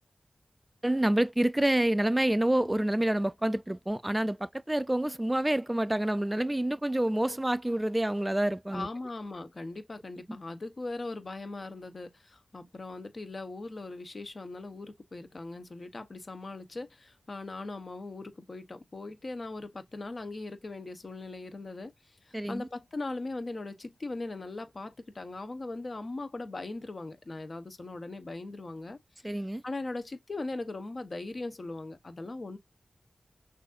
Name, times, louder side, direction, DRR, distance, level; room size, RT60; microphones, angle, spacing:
voice 1, 0.8-8.9 22.3-22.7 29.2-29.6, right 1 dB, 15° right, 0.4 m, -28 dB
voice 2, 8.7-21.9 22.2-29.0 29.6-32.6, left 2 dB, 55° left, 0.9 m, -39 dB
6.2 x 2.6 x 2.5 m
cardioid pair, 45°, 0 cm